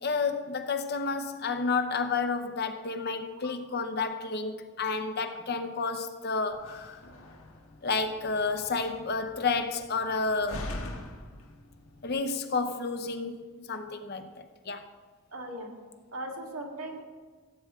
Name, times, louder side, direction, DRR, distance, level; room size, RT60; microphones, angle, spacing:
voice 1, 0.0-7.0 7.8-10.7 12.0-14.9, left 4 dB, 45° left, 8 dB, 0.7 m, -31 dB
Slam, 6.5-12.1, left 1 dB, 70° left, 1.6 m, -44 dB
voice 2, 15.3-15.7 16.1-17.0, right 1 dB, 70° right, 1 dB, 2.0 m, -38 dB
16.5 x 8.6 x 3.6 m, 1.5 s
head